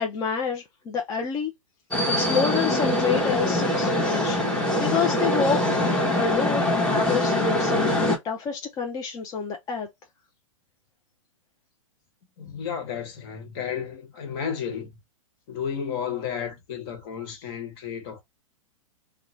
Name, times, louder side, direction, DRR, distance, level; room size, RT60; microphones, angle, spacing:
voice 1, 0.0-1.5 2.1-4.4 4.8-5.6 6.2-9.9, left 6 dB, 20° left, 0.5 m, -28 dB
sound 1, 1.9-8.2, left 1 dB, 5° left, 1.0 m, -23 dB
voice 2, 12.4-14.9 15.5-18.2, left 7 dB, 45° left, 1.2 m, -32 dB
2.9 x 2.1 x 3.9 m
figure-of-eight pair, 110°, 18 cm